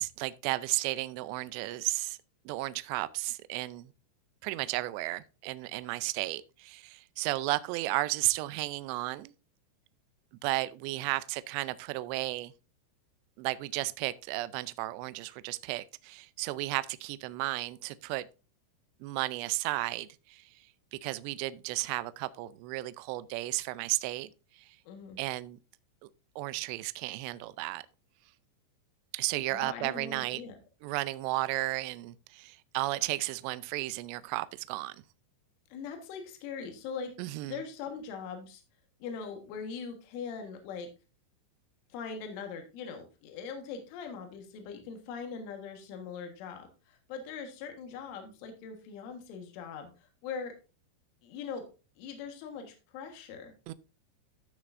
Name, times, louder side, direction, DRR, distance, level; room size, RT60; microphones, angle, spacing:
voice 1, 0.0-2.2 2.5-3.9 4.4-9.3 10.4-12.5 13.4-18.3 19.0-20.5 20.9-24.3 24.5-24.8 25.2-25.6 26.0-26.1 26.4-27.8 29.1-30.4 30.8-35.0 37.2-37.6 53.7-53.8, right 19 dB, 85° right, 2.5 m, -33 dB
voice 2, 24.9-25.2 29.5-30.6 35.7-38.6 39.0-40.9 41.9-50.5 51.2-51.7 52.0-53.5, left 6 dB, 80° left, 3.9 m, -41 dB
15.0 x 6.6 x 2.5 m
omnidirectional pair, 5.6 m